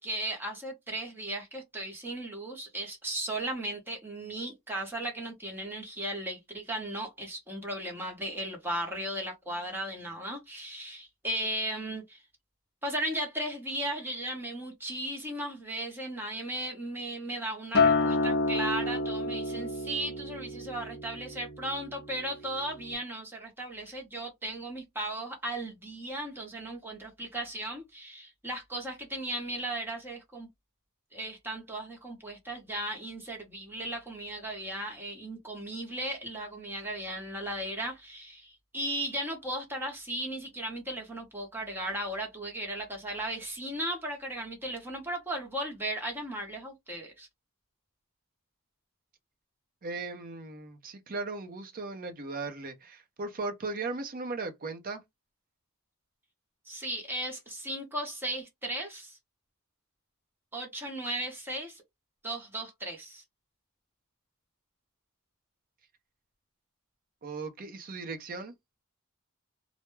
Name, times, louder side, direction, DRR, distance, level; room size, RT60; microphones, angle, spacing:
voice 1, 0.0-12.2 12.8-30.5 31.1-47.3 56.7-59.2 60.5-61.8 62.2-63.2, right 1 dB, 10° right, 0.9 m, -36 dB
Acoustic guitar, 17.7-22.2 22.6-22.9, left 3 dB, 45° left, 0.6 m, -29 dB
voice 2, 49.8-55.0 67.2-68.5, right 3 dB, 40° right, 0.5 m, -37 dB
2.2 x 2.0 x 3.1 m
head